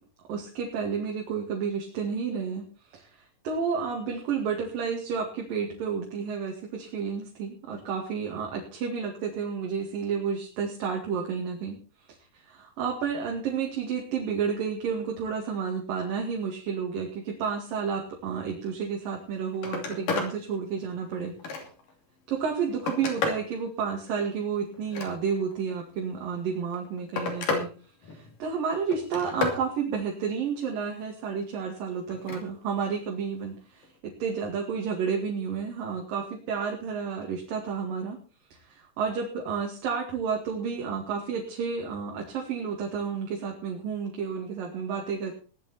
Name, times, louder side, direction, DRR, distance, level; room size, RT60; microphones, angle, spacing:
voice 1, 0.3-2.6 2.9-11.8 12.4-21.3 22.3-27.7 28.0-38.2 38.7-45.3, right 6 dB, 90° right, 0 dB, 3.9 m, -31 dB
Telephone, 19.1-19.2 19.5-20.3 20.8-21.9 22.5-23.5 24.7-25.5 26.5-27.7 28.0-28.5 28.9-29.6 32.1-32.4 33.8-34.0, left 4 dB, 75° left, 4.4 m, -32 dB
17.5 x 11.5 x 4.3 m, 0.37 s
omnidirectional pair, 3.8 m